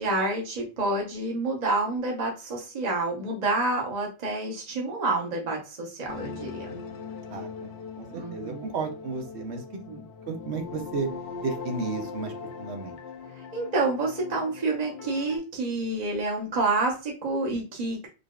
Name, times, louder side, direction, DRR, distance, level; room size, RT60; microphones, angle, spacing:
voice 1, 0.0-6.8 8.1-8.7 9.9-10.0 13.5-18.1, right 2 dB, 40° right, -1 dB, 1.1 m, -28 dB
sound 1, 6.1-15.4, left 5 dB, 70° left, 0.8 m, -40 dB
voice 2, 7.3-7.7 8.0-9.6 10.3-11.1 11.4-12.3 12.6-12.9, right 4 dB, 70° right, 5 dB, 1.1 m, -33 dB
3.8 x 3.3 x 2.3 m, 0.31 s
omnidirectional pair, 1.2 m